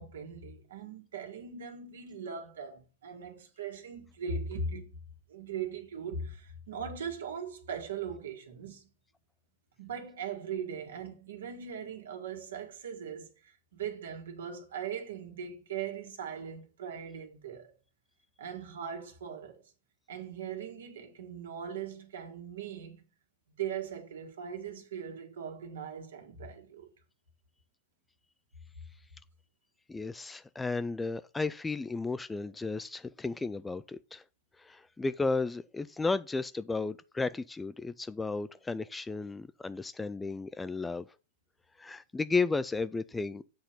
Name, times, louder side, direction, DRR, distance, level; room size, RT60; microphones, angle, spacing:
voice 1, 0.0-4.9 5.3-8.9 9.8-17.7 18.4-19.6 20.1-23.0 23.6-26.9, right 6 dB, 65° right, 1.8 m, -40 dB
voice 2, 29.9-34.2 34.6-41.1 41.8-43.4, left 3 dB, 10° left, 0.3 m, -33 dB
7.9 x 4.3 x 5.3 m
figure-of-eight pair, 100°, 0 cm